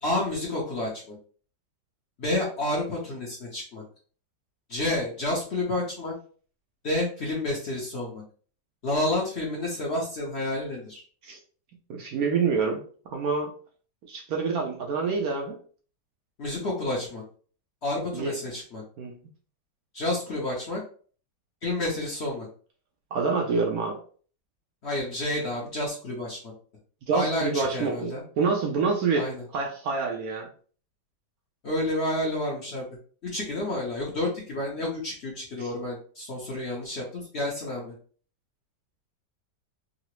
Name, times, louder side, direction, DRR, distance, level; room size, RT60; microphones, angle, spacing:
voice 1, 0.0-1.2 2.2-3.8 4.7-6.1 6.8-8.2 8.8-11.0 16.4-17.2 17.8-18.8 19.9-20.8 21.6-22.5 24.8-26.5 27.1-28.2 29.1-29.4 31.6-32.9 33.2-37.9, left 1 dB, 50° left, -3 dB, 0.8 m, -30 dB
voice 2, 11.9-12.8 13.1-13.5 14.1-15.6 18.1-18.3 19.0-19.1 23.1-24.0 27.1-30.5 35.6-35.7, right 4 dB, 70° right, 1 dB, 0.9 m, -27 dB
3.7 x 2.0 x 3.0 m, 0.43 s
omnidirectional pair, 1.9 m